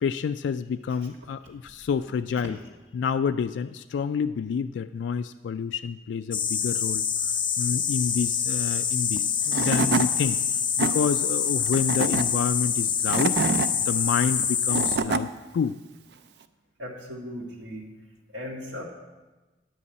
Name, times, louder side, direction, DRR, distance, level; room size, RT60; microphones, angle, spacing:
voice 1, 0.0-2.6 2.9-7.0 7.6-10.4 10.8-13.4 13.9-15.8, left 6 dB, 85° left, 9 dB, 0.3 m, -28 dB
sound 1, 6.3-15.0, left 7 dB, 25° left, 0.6 m, -26 dB
Tools / Wood, 9.2-9.3 9.5-10.1 10.6-10.9 11.7-12.2 12.9-13.7 14.4-15.2, right 4 dB, 65° right, 0.5 m, -25 dB
voice 2, 16.8-17.9 18.3-18.8, left 1 dB, 85° right, -3 dB, 1.9 m, -37 dB
10.5 x 5.5 x 8.2 m, 1.2 s
head